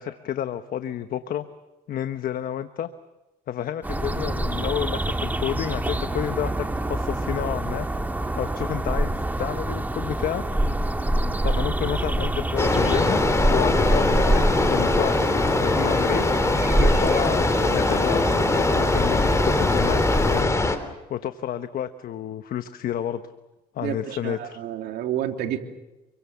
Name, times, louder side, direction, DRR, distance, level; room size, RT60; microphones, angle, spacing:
voice 1, 0.0-1.5 1.9-2.9 3.5-7.9 8.4-9.1 9.4-10.4 11.4-13.2 13.5-16.2 16.8-23.2 23.7-24.6, left 10 dB, 60° left, 9 dB, 1.2 m, -30 dB
sound 1, 3.8-20.4, right 1 dB, 10° right, 1.8 m, -26 dB
sound 2, 12.6-20.8, left 2 dB, 15° left, 3.3 m, -22 dB
voice 2, 23.8-25.6, right 10 dB, 75° right, 4 dB, 3.1 m, -29 dB
28.0 x 23.5 x 7.2 m, 1.0 s
cardioid pair, 110°, 17 cm